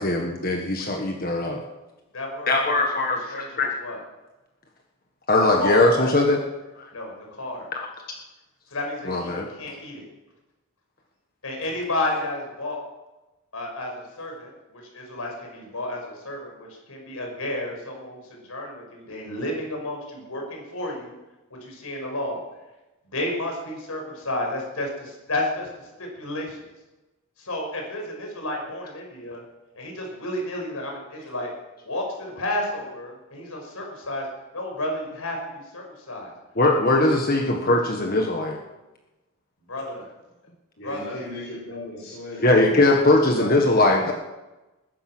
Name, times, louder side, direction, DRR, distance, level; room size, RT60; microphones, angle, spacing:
voice 1, 0.0-1.6 2.5-3.7 5.3-6.4 9.1-9.5 36.6-38.6 42.4-44.1, left 2 dB, 40° left, 2 dB, 1.5 m, -20 dB
voice 2, 2.1-4.0 5.5-6.1 6.9-7.7 8.7-10.0 11.4-12.8 13.5-21.1 21.6-22.4 23.1-25.7 26.0-26.6 27.4-29.4 29.7-31.5 31.8-34.3 34.5-36.3 37.1-37.2 39.7-40.1 40.8-41.2 43.4-43.5, left 1 dB, 85° left, 1 dB, 5.5 m, -31 dB
voice 3, 40.8-42.9, left 1 dB, 60° left, -8 dB, 5.5 m, -37 dB
20.5 x 10.5 x 6.2 m, 1.0 s
head